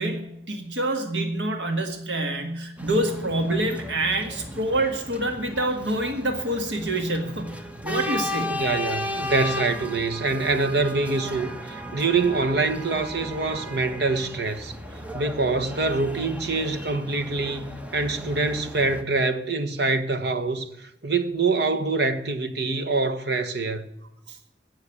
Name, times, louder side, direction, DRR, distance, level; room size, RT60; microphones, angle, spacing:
voice 1, 0.0-7.6 7.8-8.6 24.3-24.4, right 1 dB, 80° right, 1.7 m, -26 dB
sound 1, 2.8-19.0, equal, 10° right, 1.1 m, -35 dB
voice 2, 8.5-14.7 15.1-17.7 17.9-23.9, right 3 dB, 65° right, 1.3 m, -25 dB
16.0 x 6.4 x 8.3 m
head